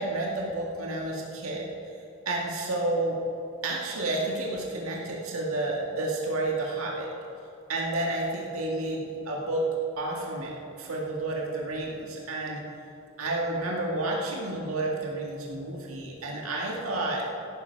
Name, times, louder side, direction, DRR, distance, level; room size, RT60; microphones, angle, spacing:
voice 1, 0.0-1.7 2.3-3.2 3.6-7.1 7.7-9.7 10.0-12.6 13.2-17.2, right 2 dB, 85° right, -2 dB, 2.1 m, -30 dB
16.5 x 10.0 x 4.7 m, 2.6 s
head